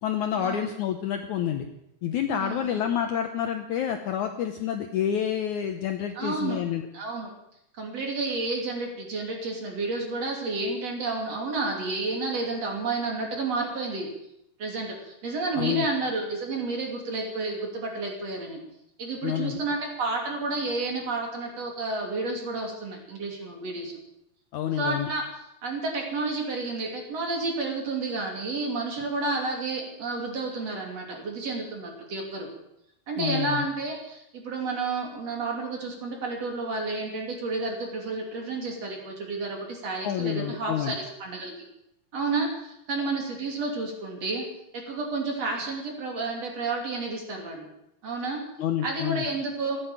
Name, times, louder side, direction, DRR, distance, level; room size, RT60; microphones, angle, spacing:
voice 1, 0.0-1.7 2.0-6.9 15.6-15.9 19.2-19.6 24.5-25.1 33.2-33.7 40.0-41.0 48.6-49.2, left 9 dB, 70° left, 6 dB, 1.9 m, -28 dB
voice 2, 2.4-2.8 6.2-6.7 6.9-7.3 7.8-14.1 14.6-18.6 19.0-23.9 24.8-25.2 25.6-32.5 33.1-41.5 42.1-44.5 44.7-47.7 48.0-48.4 48.8-49.8, right 3 dB, 45° right, 1 dB, 3.8 m, -31 dB
15.5 x 9.9 x 8.9 m, 0.80 s
omnidirectional pair, 4.3 m